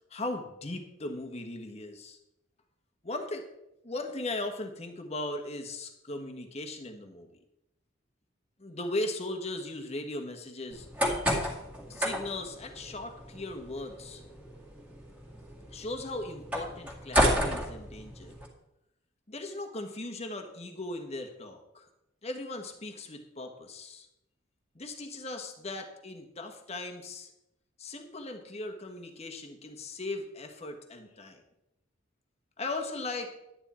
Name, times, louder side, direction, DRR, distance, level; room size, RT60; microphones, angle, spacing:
voice 1, 0.1-2.2 3.0-3.5 3.8-7.3 8.6-10.9 11.9-14.2 15.7-18.3 19.3-21.9 22.2-24.1 24.7-27.3 27.8-31.4 32.6-33.3, left 2 dB, 35° left, 5 dB, 1.4 m, -38 dB
sound 1, 10.7-18.5, equal, 5° right, 2.2 m, -32 dB
11.0 x 9.9 x 4.4 m, 0.87 s
head